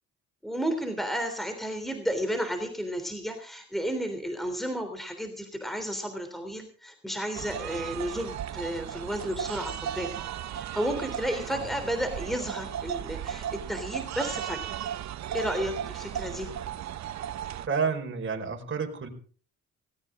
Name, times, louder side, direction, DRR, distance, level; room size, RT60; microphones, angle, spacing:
voice 1, 0.4-10.2 10.5-14.8 15.3-16.5, equal, ahead, 7 dB, 3.4 m, -32 dB
sound 1, 7.3-17.7, right 10 dB, 65° right, 0.8 m, -36 dB
voice 2, 17.7-19.1, right 5 dB, 40° right, 3 dB, 5.1 m, -30 dB
19.0 x 18.5 x 3.8 m, 0.42 s
cardioid pair, 90°, 30 cm